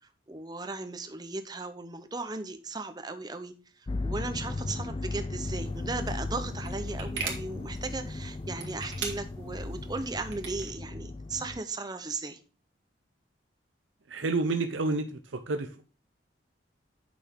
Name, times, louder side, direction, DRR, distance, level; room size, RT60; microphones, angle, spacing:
voice 1, 0.3-3.5 4.0-12.4, right 3 dB, 20° right, 9 dB, 0.7 m, -36 dB
sound 1, 3.9-11.6, left 2 dB, 25° left, 0.3 m, -36 dB
sound 2, 5.5-10.7, right 5 dB, 70° right, 2.1 m, -42 dB
voice 2, 14.1-15.8, right 3 dB, 90° right, 6 dB, 0.8 m, -30 dB
8.5 x 6.1 x 3.6 m, 0.36 s
head